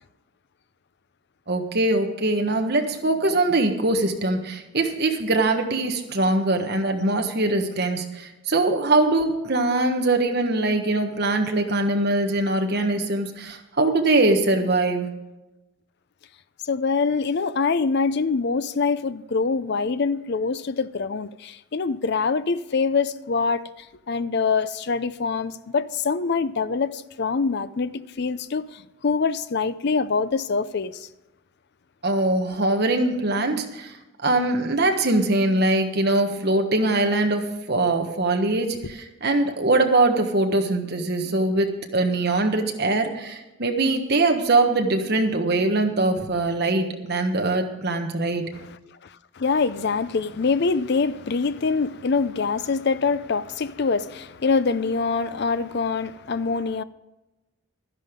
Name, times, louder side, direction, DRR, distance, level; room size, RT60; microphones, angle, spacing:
voice 1, 1.5-15.1 32.0-34.0 34.2-48.4, right 2 dB, 45° right, 1.3 m, -22 dB
voice 2, 16.6-31.1 48.6-48.8 49.4-56.8, left 4 dB, 50° left, 0.5 m, -24 dB
12.5 x 10.5 x 5.2 m
head